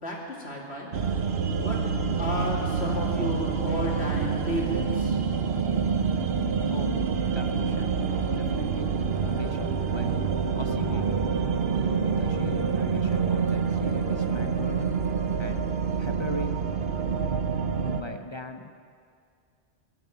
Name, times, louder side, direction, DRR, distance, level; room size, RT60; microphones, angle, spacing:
voice 1, 0.0-0.9 1.6-1.8 2.2-5.2, left 1 dB, 80° left, -3 dB, 3.0 m, -32 dB
sound 1, 0.9-18.0, right 5 dB, 65° right, 1.1 m, -27 dB
voice 2, 6.3-11.1 11.4-11.5 12.0-15.0 15.4-16.9 17.9-18.7, left 2 dB, 30° left, 6 dB, 0.8 m, -39 dB
17.5 x 7.8 x 9.1 m, 2.3 s
omnidirectional pair, 1.1 m